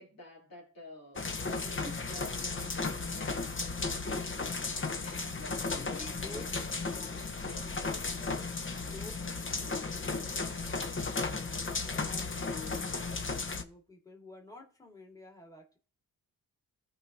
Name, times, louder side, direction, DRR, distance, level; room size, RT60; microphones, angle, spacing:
voice 1, 0.0-4.3 5.0-6.5, left 1 dB, 75° left, 3.7 m, -51 dB
sound 1, 1.1-13.6, left 3 dB, 35° left, 1.0 m, -35 dB
voice 2, 1.6-2.0 5.5-7.0 7.9-10.8 11.3-15.8, left 1 dB, 10° left, 2.1 m, -52 dB
14.0 x 4.8 x 2.8 m
cardioid pair, 70°, 35 cm